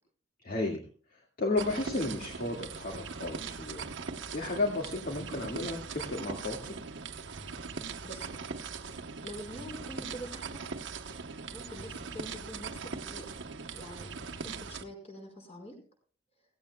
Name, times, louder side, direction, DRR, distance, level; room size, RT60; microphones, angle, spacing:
voice 1, 0.4-0.8 1.4-3.9 4.3-6.6, left 2 dB, 50° left, 0 dB, 2.0 m, -33 dB
sound 1, 1.6-14.8, right 5 dB, 65° right, 1.0 m, -41 dB
voice 2, 8.9-10.6 11.5-13.4 13.7-14.1 14.4-15.8, equal, 35° left, 3 dB, 5.3 m, -45 dB
17.0 x 16.0 x 2.3 m, 0.42 s
head